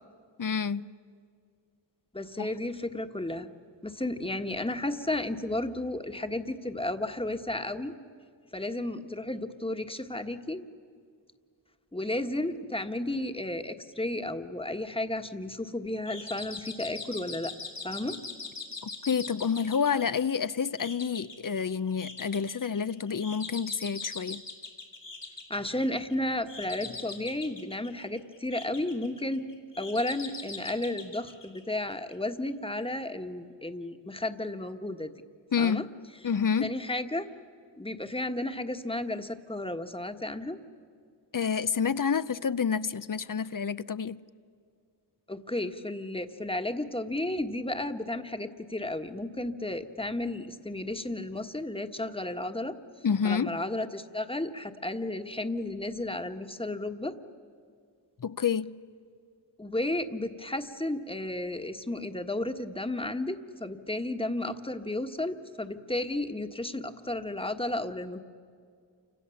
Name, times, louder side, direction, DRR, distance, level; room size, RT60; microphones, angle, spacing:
voice 1, 0.4-0.9 2.4-2.5 19.1-24.4 35.5-35.8 36.2-36.7 41.3-44.2 53.0-53.6 58.2-58.8, left 6 dB, 50° left, 0.7 m, -28 dB
voice 2, 2.1-3.5 3.8-7.9 8.5-10.6 11.9-17.5 17.8-18.2 25.5-29.5 29.8-35.1 35.6-35.8 36.6-37.3 37.8-40.6 45.3-52.8 53.2-57.1 59.6-68.2, left 1 dB, 10° left, 1.4 m, -33 dB
sound 1, 16.1-32.2, left 4 dB, 70° left, 3.2 m, -43 dB
29.0 x 26.0 x 7.1 m
wide cardioid pair, 45°, 43 cm